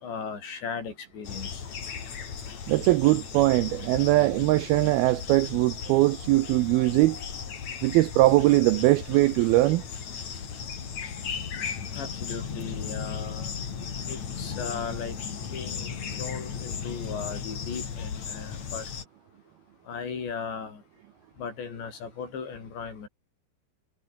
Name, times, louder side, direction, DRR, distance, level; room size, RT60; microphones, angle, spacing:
voice 1, 0.0-1.6 5.4-5.5 11.9-13.5 14.1-15.2 15.5-15.9 16.2-18.8 19.9-20.8 21.4-23.1, left 6 dB, 75° left, 7.9 m, -37 dB
sound 1, 1.2-19.0, left 6 dB, 45° left, 3.8 m, -36 dB
voice 2, 2.7-7.2 7.8-9.8, right 18 dB, 85° right, 2.2 m, -21 dB
omnidirectional pair, 5.1 m